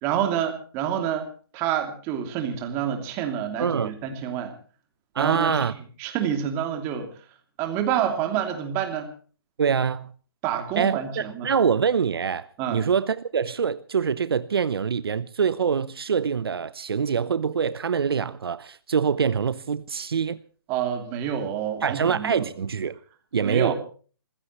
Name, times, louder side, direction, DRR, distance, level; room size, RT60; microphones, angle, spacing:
voice 1, 0.0-1.3 1.5-4.5 5.2-5.6 6.0-7.2 7.6-9.1 10.4-11.5 12.6-12.9 20.7-22.5 23.4-23.7, right 9 dB, 20° right, 2.8 m, -28 dB
voice 2, 3.6-3.9 5.1-5.7 9.6-10.1 10.8-20.4 21.8-23.0 23.3-23.7, right 6 dB, 75° right, 0.9 m, -25 dB
27.0 x 16.0 x 3.1 m
hypercardioid pair, 165°, 13 cm